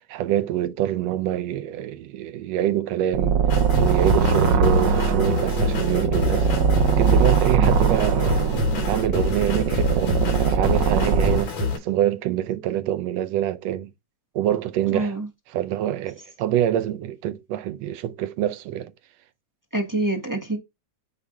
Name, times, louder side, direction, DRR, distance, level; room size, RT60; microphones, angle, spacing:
voice 1, 0.1-3.4 3.8-6.5 6.9-8.4 8.8-13.9 14.4-15.2 15.5-18.9, right 12 dB, 70° right, 1.8 m, -25 dB
sound 1, 3.1-11.4, right 6 dB, 85° right, 1.0 m, -21 dB
sound 2, 3.5-11.8, left 5 dB, 70° left, 4.8 m, -28 dB
voice 2, 14.9-15.3 19.7-20.6, right 2 dB, 15° right, 0.8 m, -26 dB
8.1 x 3.5 x 3.8 m
omnidirectional pair, 3.3 m